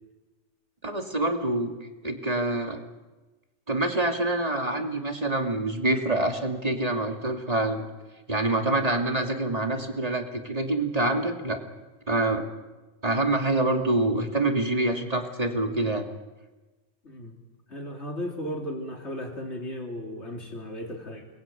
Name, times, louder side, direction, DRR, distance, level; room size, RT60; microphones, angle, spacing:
voice 1, 0.8-1.7 2.0-2.8 3.7-7.8 8.3-11.6 12.1-12.4 13.0-16.1, right 2 dB, 35° right, 3 dB, 2.6 m, -26 dB
voice 2, 17.0-17.4 17.7-21.3, equal, 75° left, 1 dB, 3.8 m, -35 dB
29.0 x 21.0 x 9.2 m, 1.2 s
omnidirectional pair, 1.2 m